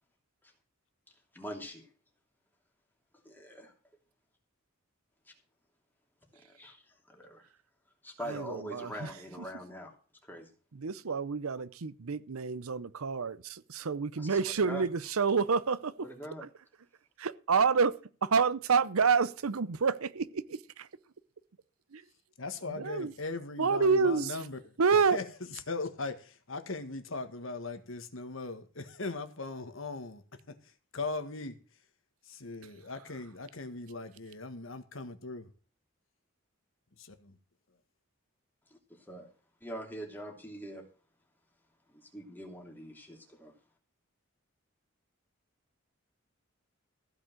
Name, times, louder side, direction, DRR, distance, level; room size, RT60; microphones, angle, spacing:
voice 1, 1.3-1.9 3.2-3.7 6.3-6.8 7.1-7.5 8.0-9.9 10.2-10.5 14.2-14.8 15.3-15.4 16.0-16.5 38.7-39.3 39.6-40.8 41.9-43.5, equal, 10° left, 2.9 m, -43 dB
voice 2, 8.3-9.1 10.8-15.9 17.2-17.9 18.2-20.9 21.9-22.0 22.7-23.1 23.6-24.4 24.8-25.2, right 5 dB, 85° right, 0.7 m, -28 dB
voice 3, 22.4-24.7 25.0-30.2 30.5-30.6 30.9-31.6 32.3-35.5 37.0-37.3, left 3 dB, 70° left, 1.6 m, -39 dB
15.0 x 5.4 x 7.6 m
head